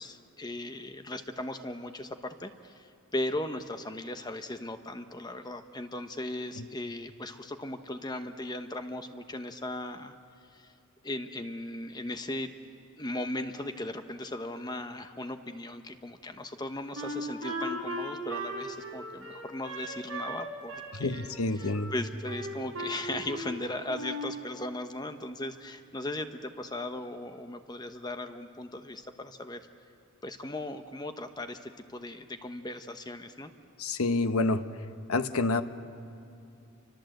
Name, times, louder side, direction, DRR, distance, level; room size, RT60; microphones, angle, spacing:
voice 1, 0.0-10.2 10.5-10.7 11.0-12.5 13.0-21.2 21.6-29.7 30.2-33.5, left 1 dB, 20° left, 8 dB, 0.9 m, -37 dB
Wind instrument woodwind instrument, 16.9-20.4 20.7-21.8 22.3-23.5 23.9-24.3, right 1 dB, 65° right, 7.4 m, -37 dB
voice 2, 21.0-21.9 33.8-34.7 35.1-35.6, left 2 dB, 80° left, 10 dB, 1.1 m, -28 dB
29.0 x 24.5 x 7.9 m, 2.5 s
head